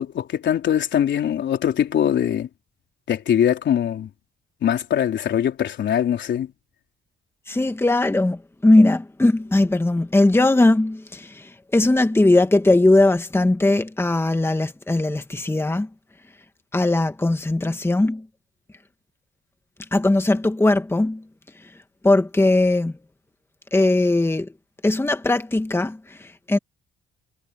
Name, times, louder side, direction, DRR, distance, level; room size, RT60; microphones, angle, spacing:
voice 1, 0.0-2.5 3.1-4.1 4.6-6.5, left 9 dB, 65° left, 3.9 m, -22 dB
voice 2, 7.5-15.9 16.7-18.3 19.9-21.2 22.0-22.9 23.7-24.5 24.8-26.6, left 2 dB, 10° left, 1.7 m, -19 dB
cardioid pair, 90°, 20 cm